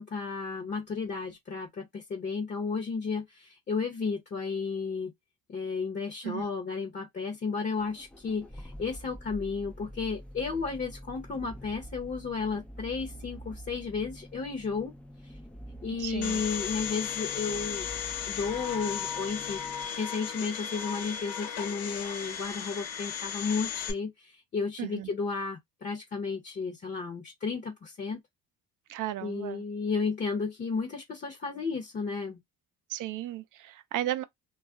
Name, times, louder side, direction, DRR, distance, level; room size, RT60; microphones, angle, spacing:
voice 1, 0.0-5.1 5.5-14.9 15.2-15.3 15.8-18.0 18.3-19.6 19.9-28.2 29.2-32.4, left 4 dB, 30° left, 0.7 m, -33 dB
sound 1, 7.7-19.8, equal, 5° left, 0.3 m, -46 dB
voice 2, 16.0-16.4 24.8-25.1 28.9-29.6 32.9-34.2, right 14 dB, 55° right, 0.6 m, -34 dB
Domestic sounds home sounds, 16.2-23.9, left 8 dB, 85° left, 1.0 m, -35 dB
2.4 x 2.1 x 3.6 m
cardioid pair, 125°, 37 cm